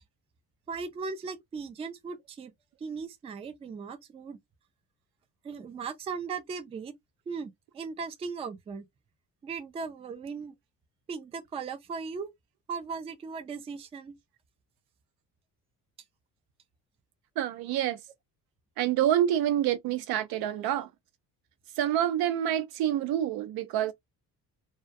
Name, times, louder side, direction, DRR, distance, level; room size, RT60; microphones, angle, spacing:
voice 1, 0.7-2.5 2.8-4.4 5.4-6.9 7.3-8.9 9.4-10.5 11.1-12.3 12.7-14.2, right 5 dB, 20° right, 0.3 m, -38 dB
voice 2, 17.4-18.0 18.8-20.9 21.8-23.9, right 11 dB, 80° right, 0.6 m, -27 dB
2.2 x 2.2 x 2.5 m
cardioid pair, 150°, 36 cm